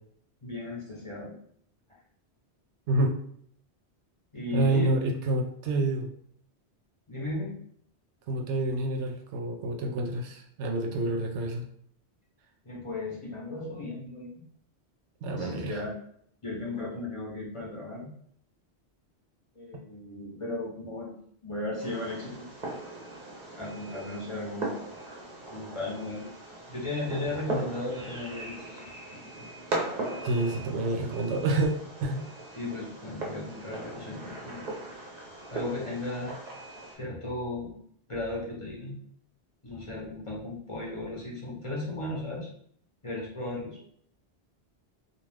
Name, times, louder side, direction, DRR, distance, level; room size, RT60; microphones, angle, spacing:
voice 1, 0.4-1.3 4.3-4.9 7.1-7.5 12.6-14.3 15.4-15.9 16.4-18.1 19.6-21.1 21.4-22.5 23.6-24.7 25.5-26.3 26.7-28.9 32.5-34.7 35.5-36.4 36.9-37.8 38.1-39.0 39.6-42.5 43.0-43.8, left 2 dB, 35° left, -5 dB, 0.7 m, -35 dB
voice 2, 4.5-6.1 8.3-11.6 15.2-15.8 30.2-31.7 32.0-32.3, right 2 dB, 85° right, 3 dB, 0.9 m, -28 dB
Fireworks, 21.8-36.9, right 2 dB, 45° right, 0.7 m, -39 dB
2.4 x 2.3 x 3.2 m, 0.64 s
omnidirectional pair, 1.2 m